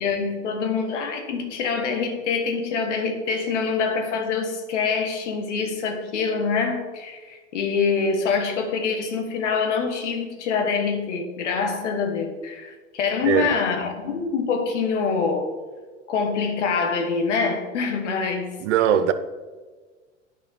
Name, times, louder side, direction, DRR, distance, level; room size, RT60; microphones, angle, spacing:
voice 1, 0.0-15.5 16.1-18.5, left 5 dB, 80° left, 1.4 m, -25 dB
voice 2, 13.2-13.6 18.6-19.1, right 10 dB, 75° right, 0.7 m, -20 dB
9.7 x 5.2 x 3.8 m
hypercardioid pair, 100°, 36 cm